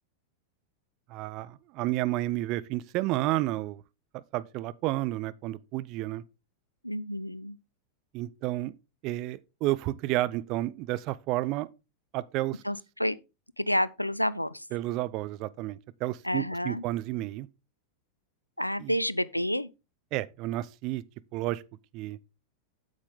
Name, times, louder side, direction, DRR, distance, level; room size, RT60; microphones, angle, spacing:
voice 1, 1.1-3.8 4.1-6.2 8.1-8.7 9.0-11.7 12.1-12.6 14.7-17.5 18.8-18.9 20.1-21.0 21.3-21.6 21.9-22.2, right 16 dB, 40° right, 0.5 m, -31 dB
voice 2, 6.8-7.6 12.6-13.2 13.6-14.7 16.2-16.8 18.6-19.7, equal, 90° left, 0.4 m, -29 dB
8.5 x 7.4 x 3.6 m
figure-of-eight pair, 90°, 0 cm